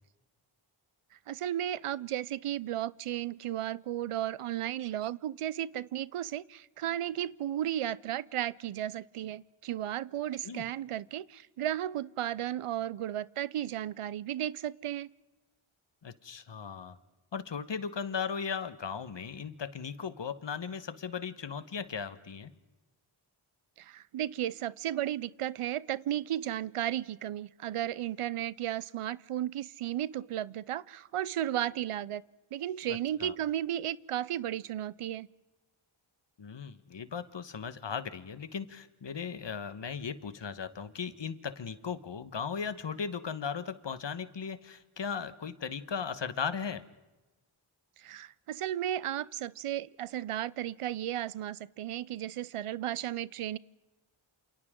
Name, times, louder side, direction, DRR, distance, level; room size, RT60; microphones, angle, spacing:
voice 1, 1.3-15.1 23.8-32.2 32.5-35.3 48.0-53.6, right 12 dB, 90° right, 20 dB, 0.6 m, -34 dB
voice 2, 16.0-17.0 17.3-22.5 32.9-33.3 36.4-46.8, left 6 dB, 60° left, 13 dB, 1.3 m, -37 dB
28.0 x 28.0 x 3.7 m, 1.1 s
wide cardioid pair, 60°, 50 cm